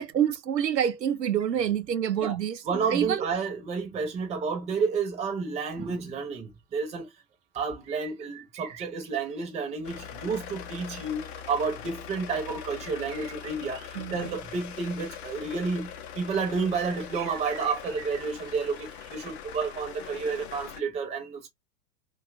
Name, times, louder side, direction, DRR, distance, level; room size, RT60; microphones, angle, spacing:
voice 1, 0.0-2.6 2.9-3.3 14.0-14.3, right 9 dB, 90° right, 0.5 m, -27 dB
voice 2, 2.6-7.1 7.5-21.5, right 5 dB, 15° right, 0.6 m, -31 dB
sound 1, 5.7-5.8 6.9-7.0 7.7-9.5 12.8-14.6 16.8-19.4 19.8-19.9, right 10 dB, 50° right, 0.7 m, -47 dB
sound 2, 9.8-20.8, left 8 dB, 45° left, 0.6 m, -42 dB
2.7 x 2.3 x 2.4 m
figure-of-eight pair, 90°, 49 cm